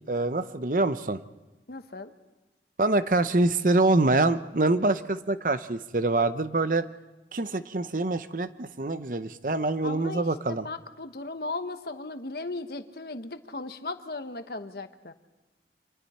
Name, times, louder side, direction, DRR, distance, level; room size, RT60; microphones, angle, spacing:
voice 1, 0.1-1.2 2.8-6.9 7.3-10.7, right 2 dB, 50° right, 12 dB, 0.7 m, -25 dB
voice 2, 1.7-2.1 9.8-15.1, left 3 dB, 60° left, 9 dB, 1.1 m, -37 dB
29.5 x 25.5 x 4.3 m, 1.1 s
head